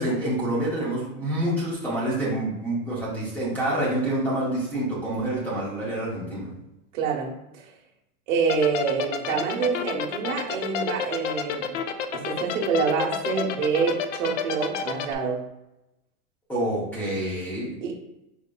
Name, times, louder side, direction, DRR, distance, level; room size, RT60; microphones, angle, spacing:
voice 1, 0.0-6.5 16.5-17.8, right 1 dB, 5° left, -6 dB, 0.5 m, -27 dB
voice 2, 6.9-7.7 8.3-11.8 12.1-15.4 17.8-17.9, right 5 dB, 55° right, -2 dB, 1.0 m, -27 dB
sound 1, 8.5-15.1, left 8 dB, 55° left, 0.5 m, -28 dB
5.0 x 4.0 x 2.2 m, 0.92 s
supercardioid pair, 160°, 45 cm